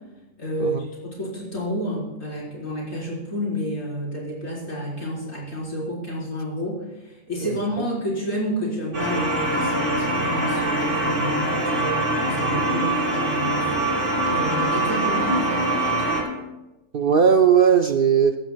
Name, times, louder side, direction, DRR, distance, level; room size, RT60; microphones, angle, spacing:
voice 1, 0.4-12.8 13.1-14.0 14.3-16.2, equal, 75° left, -6 dB, 5.0 m, -30 dB
sound 1, 8.9-16.2, right 1 dB, 40° right, 4.8 m, -23 dB
voice 2, 12.6-12.9 16.9-18.4, right 7 dB, 55° right, 7 dB, 0.6 m, -18 dB
19.5 x 14.0 x 2.3 m, 1.0 s
omnidirectional pair, 1.4 m